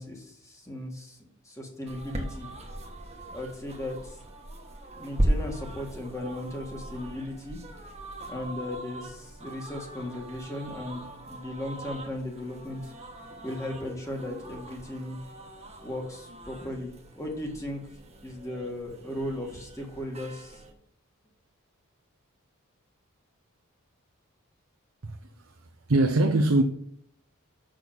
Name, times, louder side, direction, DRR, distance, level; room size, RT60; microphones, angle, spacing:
voice 1, 0.0-2.5 3.3-4.2 5.0-7.6 8.3-12.9 13.4-15.2 15.8-17.8 18.2-20.6, left 1 dB, 15° left, 2.0 m, -36 dB
sound 1, 1.9-20.7, right 1 dB, 30° right, 1.4 m, -38 dB
voice 2, 25.0-26.6, right 2 dB, 75° right, 0.8 m, -24 dB
6.7 x 6.3 x 7.1 m
head